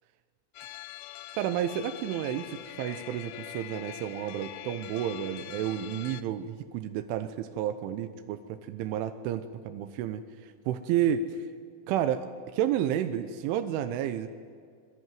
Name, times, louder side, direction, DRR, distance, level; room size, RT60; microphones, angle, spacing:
sound 1, 0.5-6.2, left 14 dB, 85° left, 2.2 m, -44 dB
voice 1, 1.3-11.5 11.9-14.3, right 10 dB, 80° right, 9 dB, 3.4 m, -31 dB
26.0 x 22.0 x 9.3 m, 2.1 s
omnidirectional pair, 5.6 m